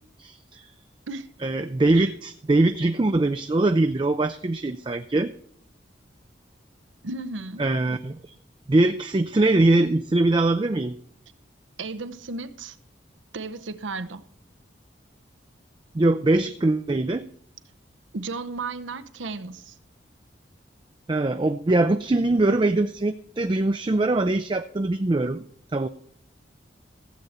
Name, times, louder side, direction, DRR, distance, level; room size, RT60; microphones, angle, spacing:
voice 1, 0.2-0.6 1.4-5.3 7.6-8.1 8.7-11.0 15.9-17.3 21.1-25.4 25.7-25.9, right 2 dB, 25° right, 0.4 m, -22 dB
voice 2, 7.0-7.7 11.8-12.8 13.3-14.2 18.1-19.8, right 3 dB, 85° right, 0.8 m, -34 dB
15.5 x 8.0 x 4.2 m
head